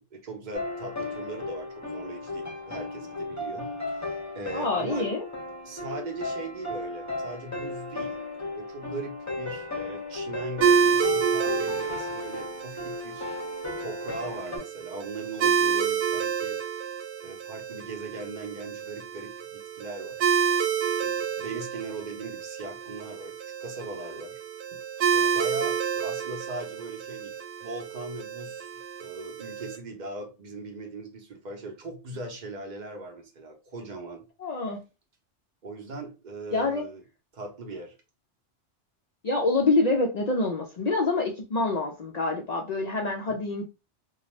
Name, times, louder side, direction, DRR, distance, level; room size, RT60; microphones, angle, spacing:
voice 1, 0.0-5.1 5.6-8.2 8.5-13.4 13.8-16.6 17.2-20.2 20.8-24.4 24.7-24.8 25.1-28.7 29.0-34.2 35.6-37.0 37.3-37.9 43.3-43.4, right 3 dB, 45° right, 0.7 m, -39 dB
sound 1, 0.5-14.6, left 2 dB, 20° left, 0.6 m, -35 dB
voice 2, 4.5-5.2 34.4-34.8 36.5-36.9 39.2-43.6, left 3 dB, 60° left, 0.4 m, -26 dB
sound 2, 10.6-29.8, right 7 dB, 85° right, 0.9 m, -29 dB
2.5 x 2.3 x 3.1 m
omnidirectional pair, 1.2 m